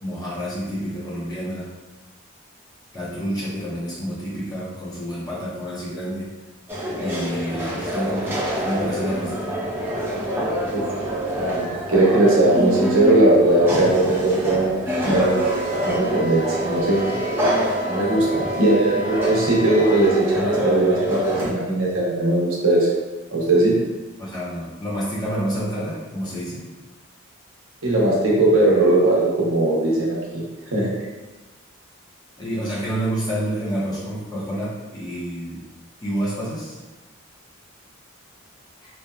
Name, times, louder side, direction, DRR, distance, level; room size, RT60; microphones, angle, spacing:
voice 1, 0.0-1.7 2.9-6.3 7.0-9.7 24.2-26.6 32.4-35.6 36.0-36.8, equal, 20° left, -8 dB, 0.7 m, -28 dB
sound 1, 6.7-21.5, equal, 10° right, 0.4 m, -26 dB
voice 2, 11.4-14.7 15.0-15.5 15.8-17.0 17.9-22.9 23.3-23.8 27.8-30.4 30.7-30.9, right 2 dB, 80° right, -4 dB, 0.7 m, -19 dB
Wind instrument woodwind instrument, 15.1-20.2, right 1 dB, 70° left, 0.6 m, -35 dB
2.7 x 2.1 x 2.2 m, 1.2 s
head